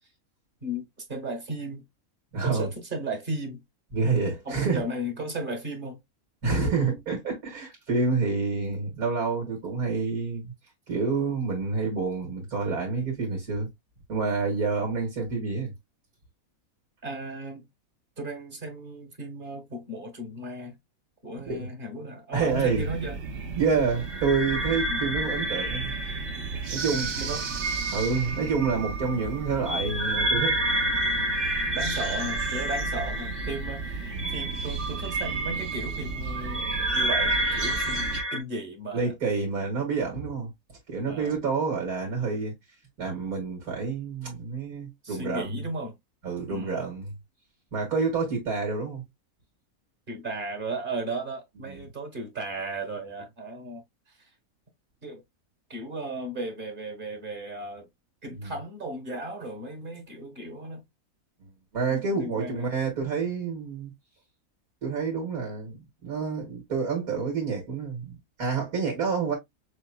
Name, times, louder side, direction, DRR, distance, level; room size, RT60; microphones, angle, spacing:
voice 1, 0.6-1.8 2.4-3.6 4.4-6.0 17.0-17.7 18.2-20.8 21.2-23.2 24.9-25.0 27.2-27.5 31.7-39.1 41.1-41.4 45.0-46.0 46.5-46.9 50.1-54.3 55.0-55.2 55.7-57.9 58.2-60.8 61.9-62.7, right 1 dB, 40° right, 1.4 m, -35 dB
voice 2, 2.3-2.7 3.9-4.9 6.4-10.5 10.9-13.7 14.1-15.7 21.5-21.7 22.3-22.9 23.5-25.9 26.7-27.2 27.9-30.5 34.1-34.5 38.9-40.5 40.9-42.5 43.0-45.6 46.2-47.1 47.7-49.0 51.6-51.8 58.3-58.5 61.7-63.9 64.8-69.3, right 4 dB, 85° right, 2.4 m, -28 dB
sound 1, 22.5-38.2, right 4 dB, 60° right, 1.0 m, -35 dB
sound 2, 23.9-38.4, right 1 dB, 10° right, 0.6 m, -30 dB
6.5 x 2.8 x 2.2 m
omnidirectional pair, 1.5 m